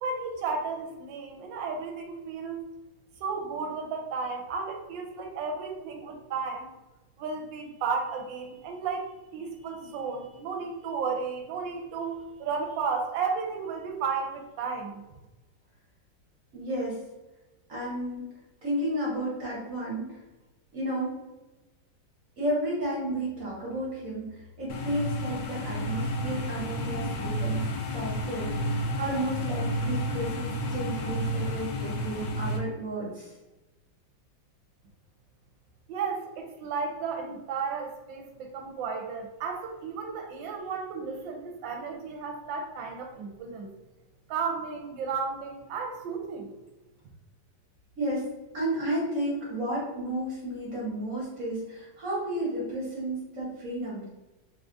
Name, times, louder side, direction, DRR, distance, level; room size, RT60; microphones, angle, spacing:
voice 1, 0.0-2.6 3.2-6.7 7.2-15.0 35.9-43.7 44.3-46.5, right 5 dB, 80° right, 3 dB, 1.2 m, -33 dB
voice 2, 16.5-17.0 17.7-18.3 18.6-20.2 20.7-21.1 22.4-33.3 48.0-54.1, right 1 dB, 55° right, -5 dB, 1.1 m, -32 dB
sound 1, 24.7-32.6, equal, 80° left, 1.3 m, -31 dB
3.6 x 2.3 x 2.5 m, 1.1 s
omnidirectional pair, 2.1 m